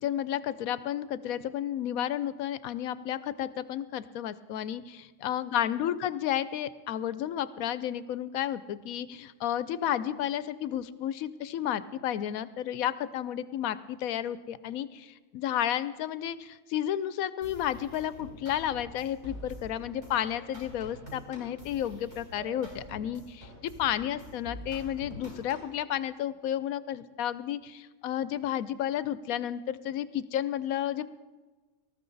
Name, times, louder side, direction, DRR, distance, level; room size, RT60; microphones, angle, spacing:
voice 1, 0.0-31.1, left 11 dB, 90° left, 15 dB, 1.1 m, -32 dB
sound 1, 17.4-25.8, equal, 30° right, 4.0 m, -46 dB
19.0 x 13.5 x 4.0 m, 1.3 s
omnidirectional pair, 1.4 m